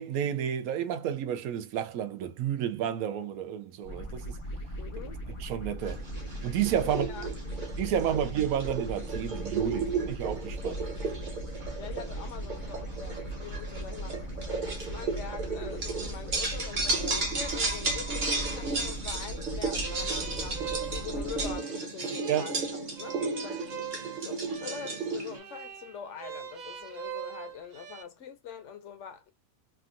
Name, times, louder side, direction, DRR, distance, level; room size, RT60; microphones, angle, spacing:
voice 1, 0.0-4.4 5.4-6.0 6.4-7.1 7.8-10.9 22.3-22.5, right 9 dB, 85° right, 1.0 m, -31 dB
sound 1, 3.8-21.6, equal, 40° left, 0.4 m, -39 dB
voice 2, 4.8-5.2 6.8-7.3 8.1-8.2 9.7-9.8 11.8-22.6 23.0-29.3, left 7 dB, 65° left, 0.9 m, -43 dB
sound 2, 5.8-25.4, right 3 dB, 40° right, 1.0 m, -34 dB
sound 3, 19.8-28.0, right 8 dB, 60° right, 0.4 m, -42 dB
3.4 x 2.4 x 2.5 m
omnidirectional pair, 1.5 m